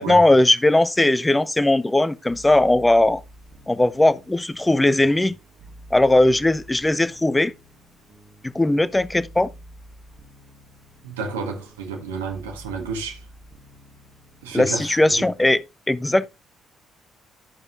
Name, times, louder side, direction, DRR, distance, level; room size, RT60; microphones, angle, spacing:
voice 1, 0.0-3.2 3.7-5.4 5.9-7.5 8.4-9.5 14.5-16.3, left 1 dB, 15° left, 0.6 m, -18 dB
sound 1, 2.3-15.6, right 1 dB, 45° right, 1.8 m, -48 dB
voice 2, 11.0-13.3 14.4-15.0, right 4 dB, 75° right, 1.6 m, -31 dB
11.5 x 7.1 x 2.5 m
figure-of-eight pair, 45°, 0 cm